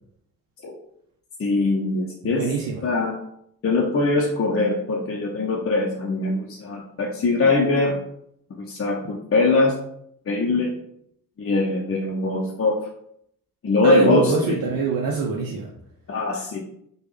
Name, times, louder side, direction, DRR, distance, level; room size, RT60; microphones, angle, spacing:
voice 1, 1.4-2.5 2.8-3.1 3.6-8.0 8.6-9.8 10.3-10.7 11.4-12.8 13.6-14.6 16.1-16.6, left 3 dB, 40° left, -2 dB, 0.6 m, -22 dB
voice 2, 2.2-2.8 13.8-15.7, right 5 dB, 65° right, 0 dB, 0.6 m, -24 dB
3.3 x 2.3 x 3.2 m, 0.72 s
supercardioid pair, 50°, 36 cm